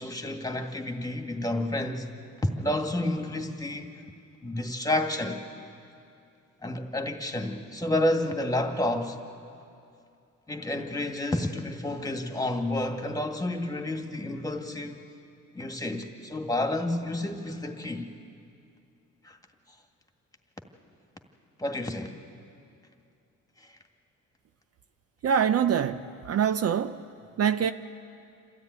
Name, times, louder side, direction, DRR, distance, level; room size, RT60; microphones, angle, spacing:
voice 1, 0.0-2.1 2.4-4.0 4.4-5.4 6.6-9.2 10.5-15.0 15.5-18.1 19.2-19.4 21.6-22.2 23.6-23.8, left 1 dB, 10° left, 2.0 m, -30 dB
voice 2, 25.2-27.0 27.4-27.7, right 8 dB, 50° right, 0.7 m, -25 dB
27.5 x 13.5 x 9.6 m
cardioid pair, 90°, 30 cm